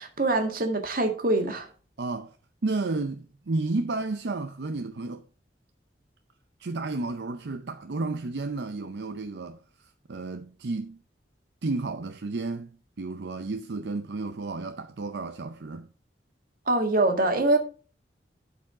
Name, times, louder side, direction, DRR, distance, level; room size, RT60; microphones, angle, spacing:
voice 1, 0.0-1.7 16.7-17.6, right 2 dB, 55° right, 1.8 m, -24 dB
voice 2, 2.0-2.4 2.6-5.2 6.6-11.0 11.6-15.9, right 3 dB, 70° right, 0.6 m, -32 dB
11.5 x 4.8 x 4.8 m
head